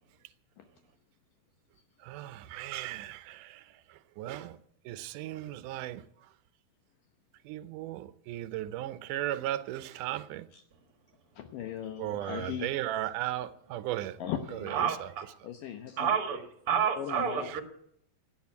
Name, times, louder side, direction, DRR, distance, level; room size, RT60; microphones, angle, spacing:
voice 1, 2.0-4.6 4.9-6.0 7.4-10.5 12.0-14.2 14.5-15.1 15.4-15.5 17.4-17.6, right 14 dB, 75° right, 2.1 m, -36 dB
voice 2, 11.4-12.7 14.2-14.9 15.4-16.1 17.0-17.6, left 10 dB, 70° left, 2.4 m, -38 dB
voice 3, 14.7-15.3 16.0-17.6, right 7 dB, 50° right, 2.0 m, -30 dB
17.0 x 9.0 x 8.5 m
omnidirectional pair, 4.3 m